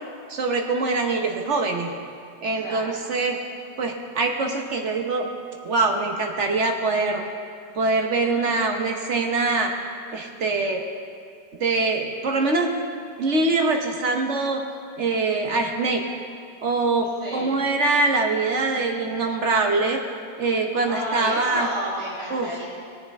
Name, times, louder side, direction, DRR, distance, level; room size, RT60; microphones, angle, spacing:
voice 1, 0.3-1.9 2.4-3.4 3.8-5.3 5.6-7.2 7.7-9.7 10.1-10.8 11.6-12.8 13.2-14.6 15.0-16.0 16.6-20.0 20.4-21.7 22.3-22.5, right 3 dB, 50° right, 3 dB, 1.1 m, -23 dB
voice 2, 2.5-2.9 17.2-17.5 20.9-22.7, equal, 15° left, -7 dB, 2.3 m, -31 dB
18.0 x 9.6 x 3.5 m, 2.3 s
omnidirectional pair, 1.9 m